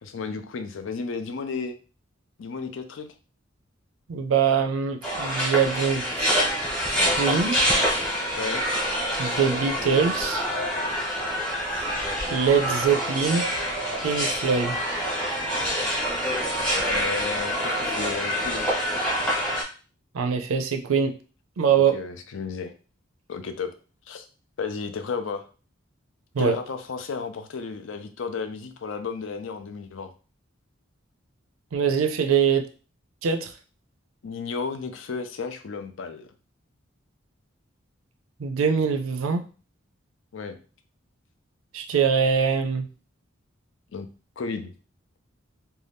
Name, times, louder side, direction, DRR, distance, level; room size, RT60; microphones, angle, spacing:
voice 1, 0.0-1.7 2.4-3.1 8.4-8.6 16.7-18.7 21.7-22.7 23.3-23.7 24.1-24.3 24.6-25.4 26.4-30.1 34.2-36.3 40.3-40.6 43.9-44.1 44.4-44.7, left 5 dB, 70° left, 8 dB, 0.4 m, -33 dB
voice 2, 4.1-6.4 7.2-7.6 9.2-10.4 12.3-13.5 14.0-14.8 20.1-21.1 21.6-22.0 26.3-26.6 31.7-32.6 33.2-33.5 38.4-39.4 41.7-42.9, right 6 dB, 85° right, 6 dB, 0.4 m, -23 dB
sound 1, 5.0-19.6, equal, 5° left, 0.9 m, -26 dB
2.6 x 2.2 x 3.4 m, 0.36 s
head